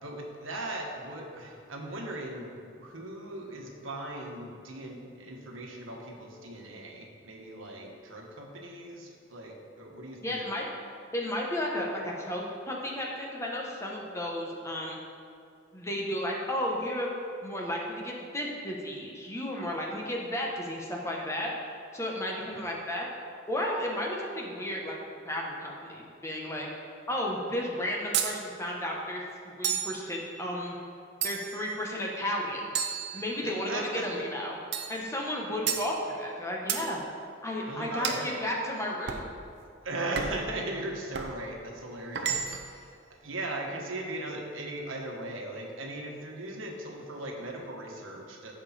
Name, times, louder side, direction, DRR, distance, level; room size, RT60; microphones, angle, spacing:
voice 1, 0.0-10.4 22.4-22.6 31.5-31.6 33.4-34.1 37.7-38.3 39.8-43.0 43.2-48.5, right 1 dB, 80° right, 0 dB, 1.5 m, -38 dB
voice 2, 10.2-10.7 11.1-15.0 15.7-17.1 17.4-21.5 21.9-23.0 23.5-25.0 25.2-26.7 27.1-30.7 31.2-32.7 33.1-34.6 34.9-37.0 37.4-39.2, left 1 dB, 15° left, -2 dB, 1.2 m, -33 dB
sound 1, 28.1-28.4 29.6-30.0 31.2-31.7 32.8-33.7 34.7-35.0 35.7-35.9 36.7-36.9 38.0-38.3 39.1-39.3 40.2-40.5 41.1-41.4 42.2-42.8, right 7 dB, 60° right, 0.7 m, -32 dB
15.5 x 5.1 x 4.3 m, 2.4 s
head